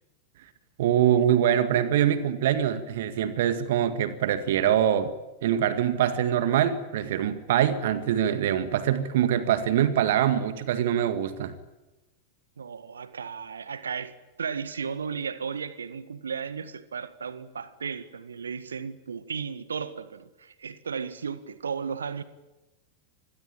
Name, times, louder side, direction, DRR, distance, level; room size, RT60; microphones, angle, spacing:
voice 1, 0.8-5.1 5.4-11.5, right 10 dB, 55° right, 1.9 m, -24 dB
voice 2, 12.6-22.2, right 6 dB, 70° right, 1.8 m, -35 dB
27.0 x 21.0 x 9.1 m
figure-of-eight pair, 90°, 0 cm